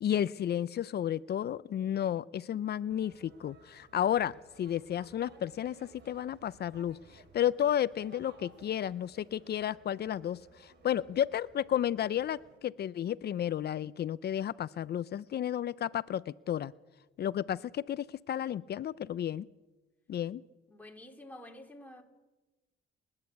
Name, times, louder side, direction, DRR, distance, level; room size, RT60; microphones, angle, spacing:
voice 1, 0.0-16.7 17.2-19.5 20.1-20.4, left 10 dB, 55° left, 0.5 m, -32 dB
sound 1, 2.9-12.6, right 3 dB, 60° right, 3.7 m, -59 dB
voice 2, 20.7-22.0, left 1 dB, 10° left, 3.2 m, -49 dB
30.0 x 11.0 x 8.2 m
cardioid pair, 90°, 20 cm